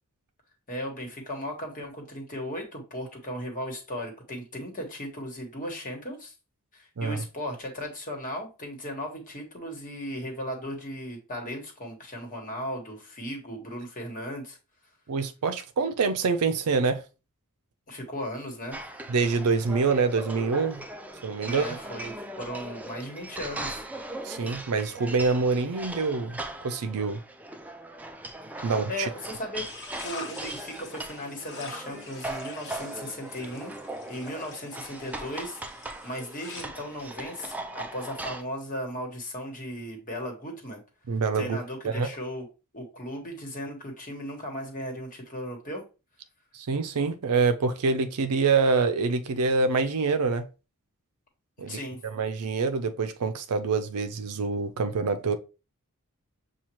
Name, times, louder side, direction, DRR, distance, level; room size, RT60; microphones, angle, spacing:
voice 1, 0.7-6.3 6.7-14.6 17.9-18.8 21.4-23.8 28.9-29.7 30.0-35.6 36.0-40.8 41.3-42.5 42.7-45.8 51.7-52.0, equal, 40° left, 1.3 m, -36 dB
voice 2, 15.1-17.0 19.1-20.8 21.2-21.8 24.2-26.4 26.6-27.2 28.6-29.1 41.1-41.6 41.8-42.1 46.5-50.5 51.6-51.8 52.0-55.4, right 4 dB, 80° right, 0.5 m, -26 dB
sound 1, 18.7-38.4, right 1 dB, 5° right, 0.4 m, -39 dB
sound 2, 29.6-36.6, left 3 dB, 55° left, 1.0 m, -45 dB
7.1 x 2.4 x 3.0 m
head